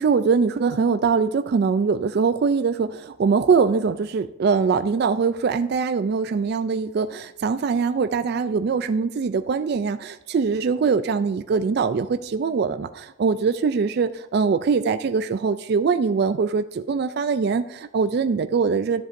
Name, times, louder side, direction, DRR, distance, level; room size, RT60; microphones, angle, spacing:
voice 1, 0.0-19.0, right 5 dB, 50° right, 10 dB, 0.3 m, -22 dB
14.0 x 7.5 x 2.6 m, 0.84 s
head